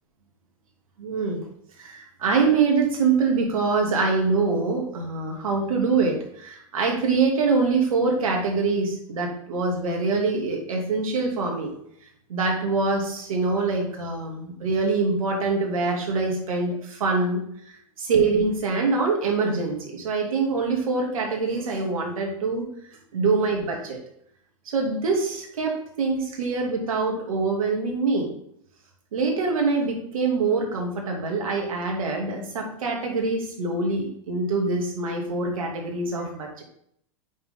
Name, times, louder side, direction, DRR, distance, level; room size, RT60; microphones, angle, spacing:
voice 1, 1.0-1.4 1.8-11.7 12.3-22.7 23.1-24.0 24.7-28.3 29.1-36.6, right 4 dB, 80° right, 1 dB, 2.6 m, -24 dB
8.5 x 5.9 x 3.7 m, 0.69 s
hypercardioid pair, 110°, 18 cm